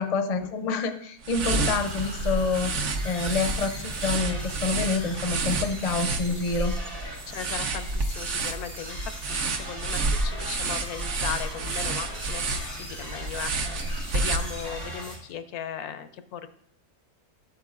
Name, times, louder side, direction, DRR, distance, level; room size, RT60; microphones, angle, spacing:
voice 1, 0.0-2.8 3.0-6.7, left 4 dB, 45° left, 7 dB, 0.5 m, -27 dB
sound 1, 1.2-14.9, right 3 dB, 60° right, 1.0 m, -30 dB
sound 2, 1.4-15.2, right 1 dB, 90° right, 3.9 m, -39 dB
voice 2, 7.3-16.5, left 9 dB, 85° left, 11 dB, 1.1 m, -37 dB
11.5 x 8.3 x 2.4 m, 0.73 s
omnidirectional pair, 1.6 m